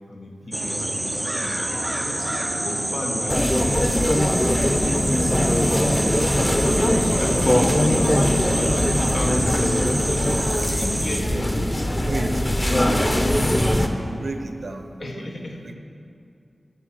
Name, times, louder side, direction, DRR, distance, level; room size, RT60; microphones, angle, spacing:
voice 1, 0.1-1.7 2.0-2.3 2.6-4.4 6.7-10.4 10.8-11.3 12.4-12.6 15.0-15.7, left 1 dB, 80° left, 0 dB, 1.3 m, -34 dB
sound 1, 0.5-11.2, right 1 dB, 20° right, 0.4 m, -27 dB
sound 2, 1.5-6.5, left 1 dB, 40° left, 1.7 m, -40 dB
sound 3, 3.3-13.9, left 1 dB, 20° left, 0.8 m, -21 dB
voice 2, 7.5-7.8 10.7-15.7, right 2 dB, 70° right, 6 dB, 0.7 m, -34 dB
12.5 x 4.6 x 7.6 m, 2.5 s
wide cardioid pair, 75°, 0 cm